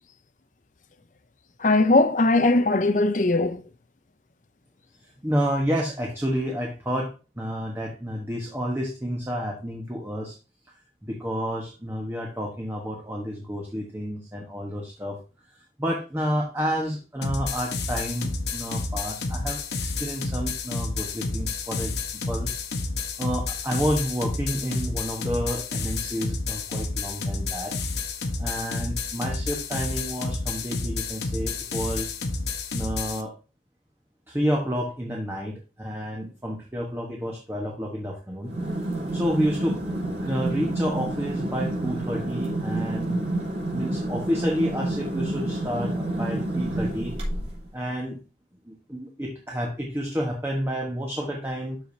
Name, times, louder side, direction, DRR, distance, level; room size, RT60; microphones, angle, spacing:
voice 1, 1.6-3.6, left 2 dB, 45° left, 0.7 m, -20 dB
voice 2, 5.2-10.4 11.0-15.2 15.8-22.0 22.3-22.5 23.2-27.8 28.4-32.1 32.7-33.3 34.3-38.5 39.1-39.8 40.2-43.2 43.7-47.2 47.7-48.2 48.7-51.8, equal, 15° right, 1.2 m, -30 dB
sound 1, 17.2-33.2, left 3 dB, 75° left, 1.1 m, -30 dB
sound 2, 38.4-47.7, right 1 dB, 35° right, 3.9 m, -29 dB
12.5 x 4.9 x 2.7 m
head